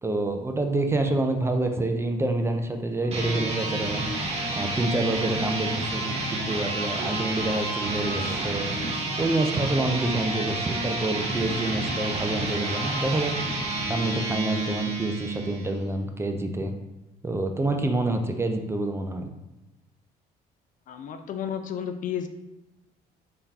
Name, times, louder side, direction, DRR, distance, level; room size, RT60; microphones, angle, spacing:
voice 1, 0.0-8.7 9.2-13.3 13.8-16.7 17.2-19.3, right 2 dB, 15° right, 4 dB, 0.4 m, -27 dB
sound 1, 3.0-15.8, right 2 dB, 35° right, 0.9 m, -30 dB
sound 2, 3.5-13.3, right 2 dB, 60° right, 1.2 m, -42 dB
voice 2, 20.9-22.3, left 8 dB, 50° left, 8 dB, 0.4 m, -32 dB
3.7 x 2.8 x 3.4 m, 0.94 s
cardioid pair, 110°, 17 cm